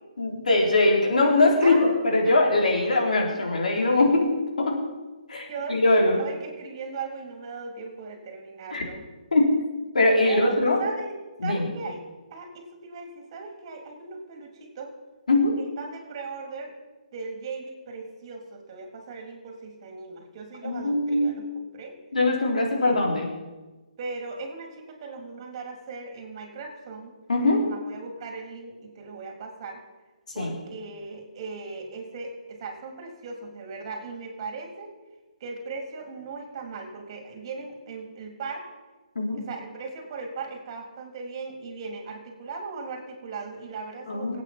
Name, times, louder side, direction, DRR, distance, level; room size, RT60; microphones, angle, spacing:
voice 1, 0.2-1.8 2.0-4.8 5.3-6.2 8.7-8.8 9.3-9.5 9.9-10.8 11.4-11.7 15.3-15.5 20.6-21.3 22.1-23.3 27.3-27.6 30.4-30.5 39.2-39.4 44.1-44.4, left 2 dB, 70° left, 0 dB, 3.9 m, -22 dB
voice 2, 1.6-2.3 5.5-9.0 10.2-11.1 11.4-12.0 12.3-14.9 15.6-16.7 17.1-22.0 22.5-23.0 24.0-27.1 27.5-29.8 30.3-34.9 35.4-38.6 39.3-44.4, right 4 dB, 40° right, 3 dB, 3.6 m, -38 dB
25.5 x 8.8 x 4.5 m, 1.2 s
figure-of-eight pair, 135°, 4 cm